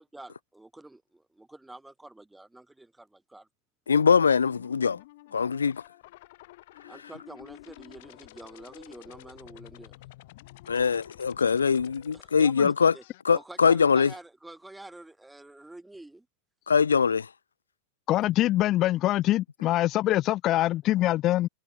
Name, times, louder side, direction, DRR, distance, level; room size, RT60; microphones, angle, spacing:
voice 1, 0.0-3.5 6.9-10.0 12.1-13.0 13.3-16.3, right 2 dB, 5° right, 3.7 m, -47 dB
voice 2, 3.9-5.0 5.3-5.8 10.7-12.9 13.2-14.1 16.7-17.3, left 6 dB, 70° left, 0.4 m, -22 dB
sound 1, 3.9-13.2, left 19 dB, 50° left, 3.3 m, -51 dB
voice 3, 18.1-21.5, left 15 dB, 35° left, 0.7 m, -24 dB
figure-of-eight pair, 90°, 0 cm